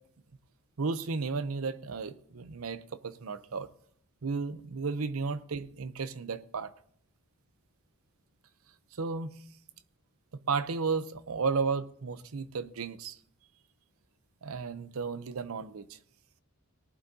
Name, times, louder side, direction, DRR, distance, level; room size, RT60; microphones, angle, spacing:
voice 1, 0.8-3.7 4.2-6.7 9.0-9.3 10.5-13.2 14.4-16.0, right 4 dB, 85° right, 0.7 m, -33 dB
18.5 x 11.5 x 2.8 m
head